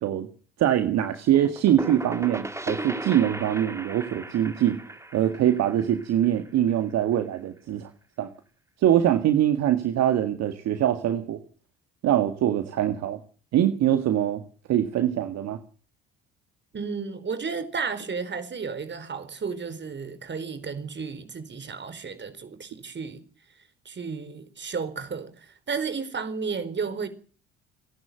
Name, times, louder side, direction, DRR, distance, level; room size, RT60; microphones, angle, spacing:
voice 1, 0.6-4.8 5.1-7.9 8.2-8.3 8.8-11.4 12.0-13.2 13.5-14.4 14.7-15.6, right 11 dB, 60° right, 1.9 m, -23 dB
sound 1, 1.3-6.9, right 1 dB, 10° right, 2.2 m, -36 dB
voice 2, 16.7-23.2 23.8-27.1, right 5 dB, 35° right, 4.5 m, -33 dB
29.5 x 11.0 x 7.9 m
hypercardioid pair, 55°, 30 cm